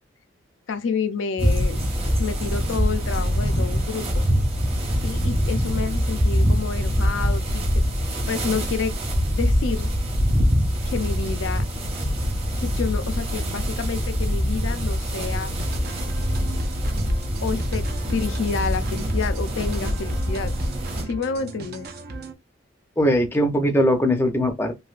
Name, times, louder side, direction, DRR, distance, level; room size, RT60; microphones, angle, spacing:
voice 1, 0.7-1.9 2.2-4.2 5.0-7.7 8.3-8.9 9.3-9.9 10.9-11.6 12.6-15.5 15.9-16.0 17.4-20.5 21.1-21.9, left 5 dB, 70° left, 0.4 m, -29 dB
sound 1, 1.4-21.0, equal, 30° right, 0.9 m, -24 dB
sound 2, 15.4-22.3, right 3 dB, 50° right, 0.5 m, -37 dB
voice 2, 23.0-24.8, equal, 10° left, 0.5 m, -20 dB
3.2 x 2.6 x 2.4 m
head